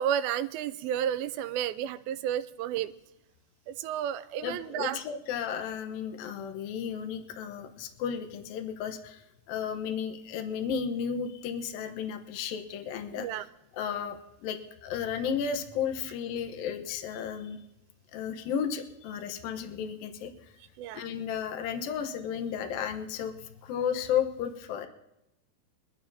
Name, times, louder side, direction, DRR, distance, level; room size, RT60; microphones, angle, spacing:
voice 1, 0.0-2.9 3.7-5.0 13.2-13.5 20.8-21.1, right 10 dB, 90° right, 13 dB, 2.5 m, -31 dB
voice 2, 4.4-13.4 13.7-17.6 18.1-20.3 20.9-24.9, left 7 dB, 80° left, 6 dB, 2.7 m, -33 dB
23.0 x 12.0 x 2.7 m, 0.89 s
omnidirectional pair, 4.2 m